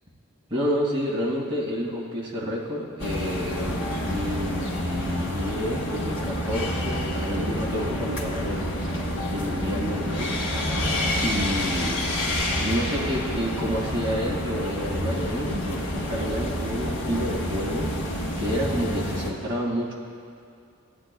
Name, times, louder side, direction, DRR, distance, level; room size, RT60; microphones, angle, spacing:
voice 1, 0.5-8.9 9.3-10.4 11.2-12.1 12.6-19.9, equal, 25° right, -6 dB, 2.2 m, -29 dB
sound 1, 3.0-19.3, left 1 dB, 85° left, 1.8 m, -28 dB
17.5 x 10.0 x 2.3 m, 2.5 s
head